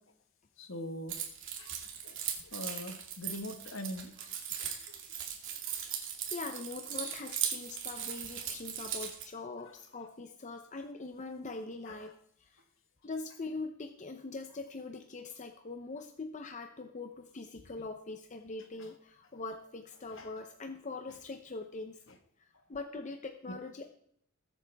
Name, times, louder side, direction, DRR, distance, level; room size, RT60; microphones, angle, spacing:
voice 1, 0.6-1.2 1.6-1.7 2.0-2.2 2.5-4.3 4.6-4.7 11.9-12.1 20.1-20.3, left 1 dB, 65° left, 7 dB, 1.7 m, -42 dB
Keys jangling, 1.1-9.2, right 8 dB, 65° right, 2.4 m, -38 dB
voice 2, 6.3-12.1 12.4-12.5 13.0-22.0 22.7-23.9, left 3 dB, 35° left, 6 dB, 0.8 m, -42 dB
20.5 x 8.1 x 3.5 m, 0.70 s
head